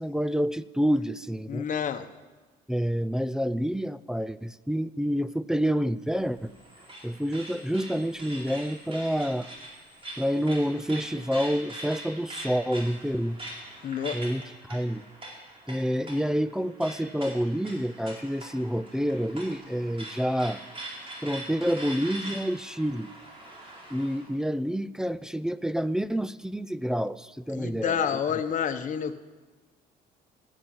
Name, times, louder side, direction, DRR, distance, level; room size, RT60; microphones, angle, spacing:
voice 1, 0.0-1.7 2.7-6.5 7.0-9.5 10.2-13.4 14.1-15.0 15.7-20.6 21.2-23.1 23.9-28.4, equal, 5° right, 17 dB, 0.4 m, -28 dB
voice 2, 1.5-2.1 13.8-14.2 27.5-29.1, left 8 dB, 50° left, 8 dB, 1.2 m, -29 dB
sound 1, 6.1-24.3, right 1 dB, 30° right, 4.6 m, -43 dB
16.5 x 9.9 x 7.8 m, 1.3 s
cardioid pair, 110°, 17 cm